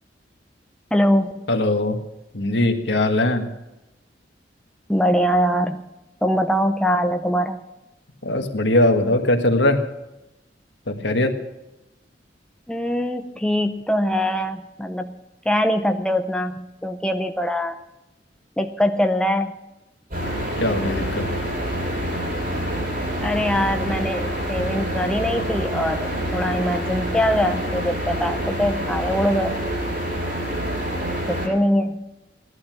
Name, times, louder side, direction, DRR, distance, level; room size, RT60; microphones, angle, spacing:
voice 1, 0.9-1.4 4.9-5.9 6.2-7.6 12.7-15.2 15.5-17.8 18.6-19.5 23.2-29.6 31.0-32.0, equal, 5° left, 5 dB, 0.6 m, -22 dB
voice 2, 1.5-2.0 2.3-3.5 8.2-9.8 10.9-11.3 20.6-21.3, left 1 dB, 75° left, 4 dB, 1.6 m, -20 dB
sound 1, 20.1-31.5, equal, 50° right, 6.8 m, -27 dB
16.5 x 11.5 x 6.0 m, 0.96 s
head